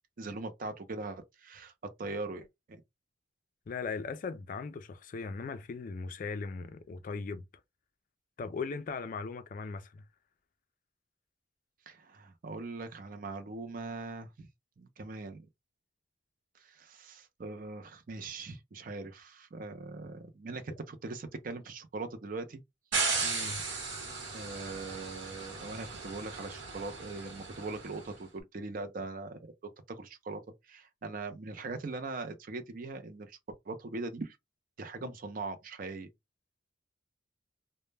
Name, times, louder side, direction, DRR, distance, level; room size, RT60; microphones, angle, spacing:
voice 1, 0.2-1.7 2.0-2.8 11.9-14.5 14.8-15.5 16.5-22.6 24.3-29.5 29.9-33.4 33.7-34.4 34.8-36.1, right 3 dB, 45° right, 0.4 m, -41 dB
voice 2, 3.7-7.4 8.4-10.0 23.2-23.6 35.0-35.1, left 4 dB, 45° left, 0.3 m, -38 dB
sound 1, 22.9-28.0, right 4 dB, 70° right, 1.0 m, -36 dB
2.1 x 2.1 x 3.2 m
head